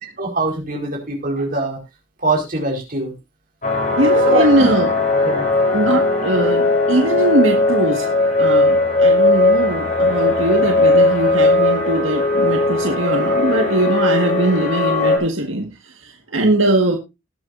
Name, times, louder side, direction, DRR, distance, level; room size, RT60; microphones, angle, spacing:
voice 1, 0.2-1.8 2.2-3.1 4.3-4.7 5.2-5.5, right 2 dB, 45° right, 4.7 m, -22 dB
sound 1, 3.6-15.2, left 2 dB, 40° left, 3.6 m, -17 dB
voice 2, 4.0-4.9 5.7-17.0, right 1 dB, 75° right, 1.8 m, -20 dB
20.0 x 7.9 x 2.6 m
head